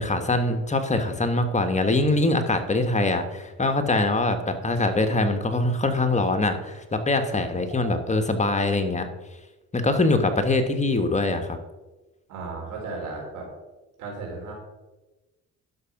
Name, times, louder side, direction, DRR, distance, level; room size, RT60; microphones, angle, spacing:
voice 1, 0.0-9.1 9.7-11.6, left 2 dB, 25° left, 7 dB, 1.3 m, -23 dB
voice 2, 12.3-13.5 14.0-14.5, right 3 dB, 85° right, -1 dB, 3.8 m, -35 dB
11.0 x 6.2 x 5.8 m, 1.1 s
cardioid pair, 90°, 30 cm